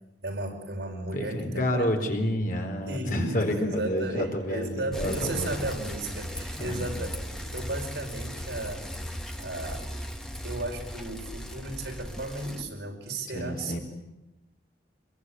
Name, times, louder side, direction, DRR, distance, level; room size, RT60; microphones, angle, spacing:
voice 1, 0.2-2.1 2.9-8.9 9.4-9.9 10.4-13.8, right 2 dB, 70° right, 2 dB, 5.6 m, -34 dB
voice 2, 1.1-5.5 6.6-6.9 13.3-13.8, equal, 50° left, 4 dB, 4.4 m, -29 dB
Bicycle, 4.9-12.6, equal, 5° left, 2.0 m, -37 dB
26.0 x 22.5 x 9.6 m, 0.95 s
head